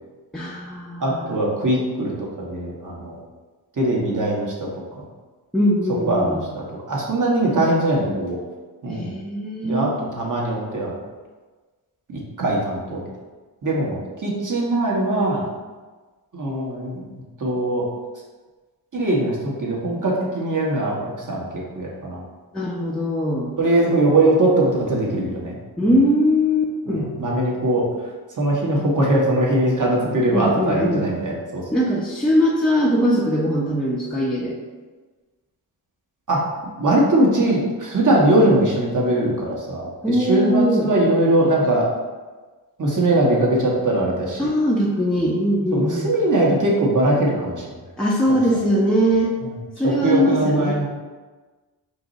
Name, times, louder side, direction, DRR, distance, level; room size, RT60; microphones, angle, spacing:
voice 1, 0.3-1.4 5.5-6.4 8.9-9.9 22.5-23.5 25.8-27.1 30.3-31.1 31.7-34.6 40.0-40.9 44.4-46.1 48.0-49.3 49.8-50.8, equal, ahead, -6 dB, 0.6 m, -21 dB
voice 2, 1.0-3.2 3.8-4.5 5.0-5.1 6.1-8.4 8.8-9.2 9.6-10.9 12.1-13.0 13.6-15.4 16.3-17.9 18.9-22.2 23.6-25.5 25.8-25.9 26.9-27.9 28.4-31.6 36.3-36.4 36.8-41.9 42.8-44.5 45.7-47.6 49.4-49.5 49.8-50.9, right 1 dB, 45° right, -3 dB, 1.3 m, -21 dB
4.8 x 2.6 x 4.0 m, 1.3 s
cardioid pair, 80°, 43 cm